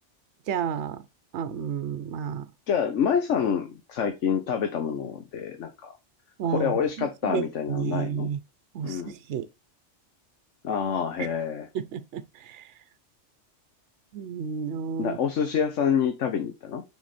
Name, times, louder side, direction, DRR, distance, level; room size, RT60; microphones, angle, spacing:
voice 1, 0.5-1.1 1.3-2.5 6.4-6.7 7.0-8.4 8.7-9.5 11.2-11.3 11.7-12.7 14.1-15.2, right 7 dB, 70° right, 0.9 m, -31 dB
voice 2, 2.7-5.9 6.4-8.3 8.8-9.1 10.6-11.7 15.0-16.8, left 7 dB, 80° left, 1.2 m, -27 dB
6.1 x 3.7 x 4.2 m
omnidirectional pair, 1.2 m